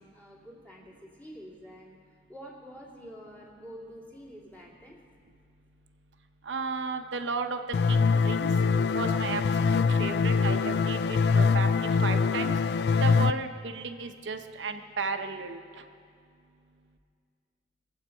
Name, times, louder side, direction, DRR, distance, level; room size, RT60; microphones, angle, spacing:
voice 1, 0.0-2.0 2.3-5.0, equal, 10° left, -5 dB, 2.3 m, -47 dB
voice 2, 6.5-7.6 7.9-8.5 8.9-9.4 9.7-12.5 13.0-15.6, right 4 dB, 85° right, 7 dB, 0.8 m, -34 dB
sound 1, 7.7-13.3, left 5 dB, 60° left, 0.3 m, -24 dB
22.5 x 8.1 x 4.6 m, 2.3 s
head